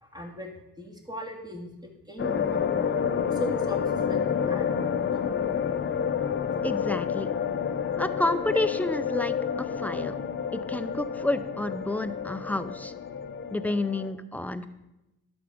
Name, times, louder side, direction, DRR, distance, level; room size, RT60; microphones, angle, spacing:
voice 1, 0.0-0.5 0.8-3.0 3.3-3.8 4.1-4.9, equal, 15° right, 2 dB, 2.2 m, -38 dB
sound 1, 2.2-14.1, left 7 dB, 40° left, 0.8 m, -29 dB
voice 2, 6.6-7.3 8.0-10.1 10.5-12.9 13.5-14.7, left 1 dB, 5° left, 11 dB, 0.5 m, -30 dB
11.0 x 7.1 x 5.0 m, 0.95 s
cardioid pair, 90°, 30 cm